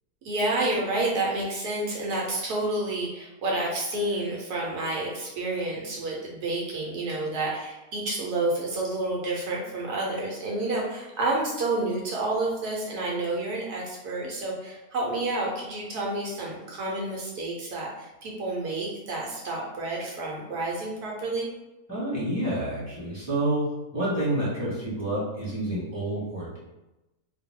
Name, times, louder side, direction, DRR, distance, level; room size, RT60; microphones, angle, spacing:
voice 1, 0.2-21.5, right 2 dB, 70° right, -3 dB, 1.2 m, -29 dB
voice 2, 21.9-26.6, right 1 dB, 10° left, -10 dB, 1.2 m, -28 dB
2.7 x 2.2 x 3.6 m, 1.0 s
omnidirectional pair, 1.8 m